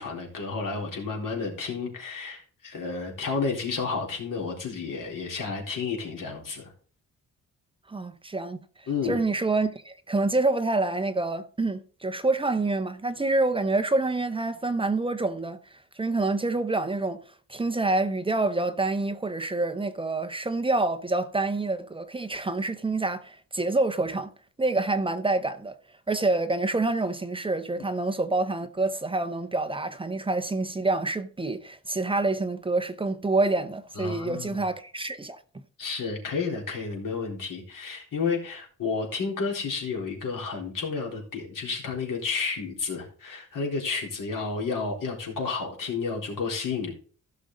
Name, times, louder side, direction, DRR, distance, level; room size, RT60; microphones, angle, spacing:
voice 1, 0.0-6.6 8.9-9.2 34.0-34.6 35.8-46.9, left 4 dB, 75° left, 3.9 m, -31 dB
voice 2, 7.9-15.6 16.0-17.2 17.5-24.3 24.6-25.7 26.1-35.4, right 2 dB, 15° right, 0.7 m, -27 dB
15.5 x 6.3 x 3.9 m
wide cardioid pair, 175°, 33 cm